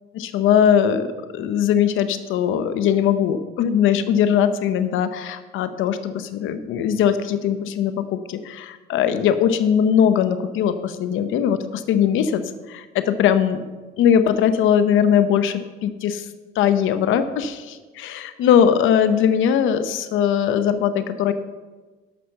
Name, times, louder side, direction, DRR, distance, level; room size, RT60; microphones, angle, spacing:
voice 1, 0.1-1.1 1.3-12.4 12.7-13.6 14.0-16.3 16.6-21.3, left 8 dB, 85° left, 10 dB, 0.7 m, -20 dB
12.0 x 5.9 x 6.4 m, 1.3 s
cardioid pair, 90°, 20 cm